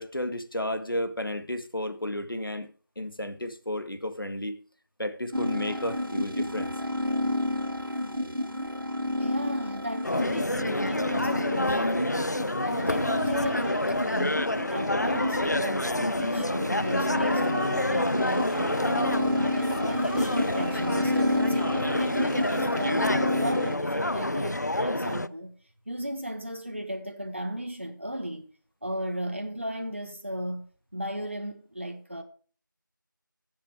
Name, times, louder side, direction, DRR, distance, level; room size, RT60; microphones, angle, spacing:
voice 1, 0.0-2.7 3.0-4.6 5.0-6.7, left 1 dB, 90° left, 1.9 m, -32 dB
sound 1, 5.3-23.8, left 1 dB, 85° right, 2.0 m, -31 dB
voice 2, 9.2-19.2 19.6-23.1 23.4-25.5 25.9-28.5 28.8-30.7 30.9-32.2, equal, 35° right, 1.2 m, -35 dB
sound 2, 10.0-25.3, left 1 dB, 55° left, 0.5 m, -28 dB
15.0 x 7.6 x 4.8 m
figure-of-eight pair, 180°, 11 cm